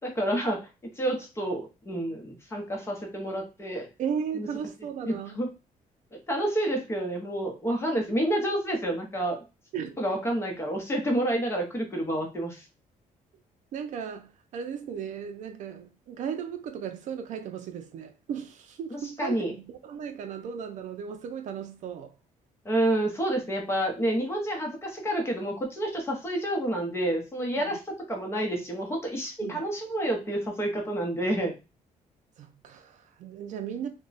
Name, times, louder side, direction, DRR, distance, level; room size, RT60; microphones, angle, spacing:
voice 1, 0.0-3.9 4.3-4.5 5.1-5.5 6.1-9.4 10.0-12.6 18.9-19.5 22.6-31.5, right 1 dB, 20° left, 0.8 m, -29 dB
voice 2, 4.0-5.5 9.7-10.0 13.7-22.1 27.5-27.6 29.4-29.6 32.4-33.9, right 7 dB, 65° right, 0.4 m, -36 dB
2.2 x 2.2 x 3.9 m
cardioid pair, 150°, 14 cm